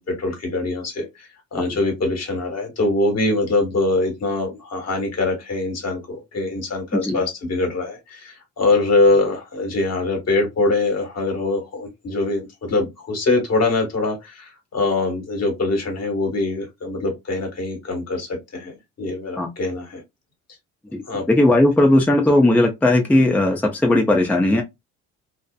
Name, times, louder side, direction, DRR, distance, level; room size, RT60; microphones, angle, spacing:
voice 1, 0.0-20.0 21.1-21.2, left 2 dB, 50° left, 1.4 m, -23 dB
voice 2, 20.9-24.6, left 1 dB, 5° left, 0.5 m, -17 dB
2.8 x 2.0 x 2.2 m
supercardioid pair, 75°, 34 cm